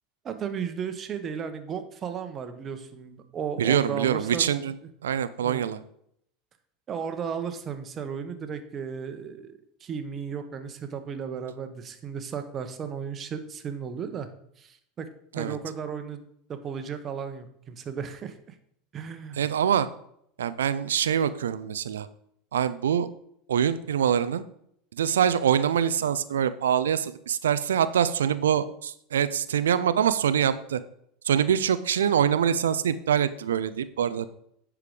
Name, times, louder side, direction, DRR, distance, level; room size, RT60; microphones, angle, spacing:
voice 1, 0.2-4.5 5.4-5.7 6.9-14.3 14.6-15.1 15.3-16.2 16.5-18.5 18.9-19.4, right 7 dB, 35° right, 8 dB, 1.2 m, -35 dB
voice 2, 3.6-4.7 5.0-5.8 15.3-15.6 19.4-19.9 20.4-22.1 22.5-23.1 23.5-24.4 25.0-30.8 31.2-34.3, right 8 dB, 85° right, 14 dB, 0.5 m, -24 dB
9.9 x 4.9 x 5.1 m, 0.71 s
hypercardioid pair, 85°, 0 cm